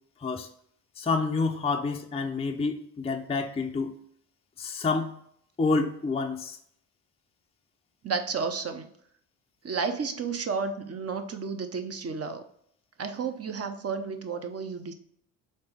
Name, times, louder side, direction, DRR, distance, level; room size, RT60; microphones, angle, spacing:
voice 1, 1.0-4.0 4.6-5.1 5.6-6.6, left 4 dB, 15° left, 3 dB, 0.5 m, -28 dB
voice 2, 8.0-8.9 9.6-12.5 13.0-14.9, right 5 dB, 35° right, 7 dB, 0.7 m, -32 dB
4.4 x 3.0 x 3.4 m, 0.69 s
supercardioid pair, 60°, 45 cm